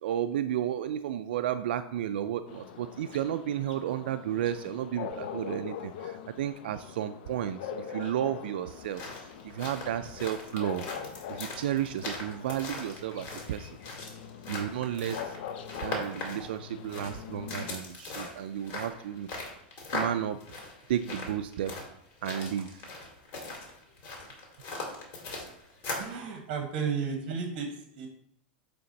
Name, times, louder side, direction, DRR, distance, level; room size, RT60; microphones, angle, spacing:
voice 1, 0.0-9.0 9.4-10.8 11.3-13.8 14.5-15.4 15.8-19.3 19.9-20.4 20.9-21.7 22.2-22.8, right 10 dB, 85° right, 10 dB, 0.4 m, -32 dB
sound 1, 2.5-17.7, left 8 dB, 75° left, 0.7 m, -43 dB
sound 2, 8.7-26.2, left 2 dB, 45° left, 2.3 m, -40 dB
voice 2, 26.0-28.1, right 5 dB, 50° right, 3 dB, 1.2 m, -34 dB
8.8 x 3.5 x 4.0 m, 0.70 s
supercardioid pair, 150°, 5 cm